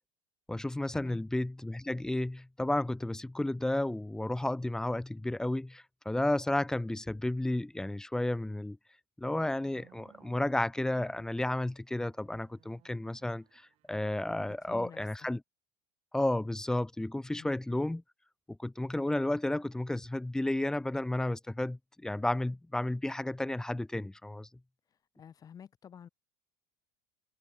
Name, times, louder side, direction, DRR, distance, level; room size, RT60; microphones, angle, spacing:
voice 1, 0.5-8.8 9.2-13.4 13.9-15.4 16.1-18.0 18.5-24.5, left 1 dB, 5° left, 0.4 m, -32 dB
sound 1, 9.2-14.7, right 17 dB, 55° right, 4.4 m, -63 dB
voice 2, 14.4-15.3 17.3-17.6 25.2-26.1, left 8 dB, 30° left, 1.0 m, -51 dB
supercardioid pair, 120°, 13 cm